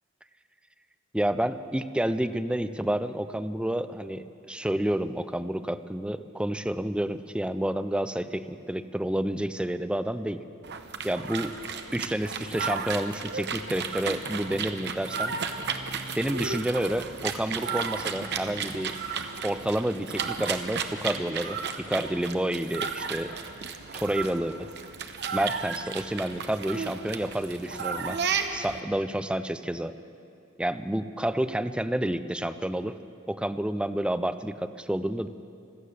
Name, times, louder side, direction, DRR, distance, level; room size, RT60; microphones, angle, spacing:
voice 1, 1.1-10.4 11.0-11.6 11.9-15.4 16.2-18.9 19.4-23.4 23.7-24.7 25.3-28.2 28.5-29.9 30.6-32.9 33.3-35.3, right 1 dB, 5° right, 11 dB, 0.4 m, -29 dB
sound 1, 10.6-28.8, right 5 dB, 55° right, 0.8 m, -33 dB
16.5 x 13.0 x 6.7 m, 2.6 s
head